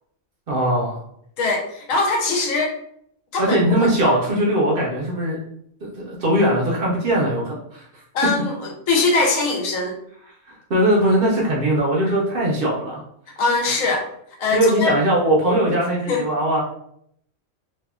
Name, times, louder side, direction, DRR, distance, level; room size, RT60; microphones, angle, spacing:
voice 1, 0.5-1.0 3.4-5.4 5.8-7.9 10.7-13.0 14.5-16.6, right 1 dB, 55° right, -3 dB, 0.7 m, -20 dB
voice 2, 1.4-2.7 3.3-4.2 8.1-9.9 13.4-14.1 14.4-15.0 16.1-16.2, left 3 dB, 90° left, 1 dB, 1.0 m, -22 dB
2.7 x 2.3 x 2.3 m, 0.70 s
omnidirectional pair, 1.3 m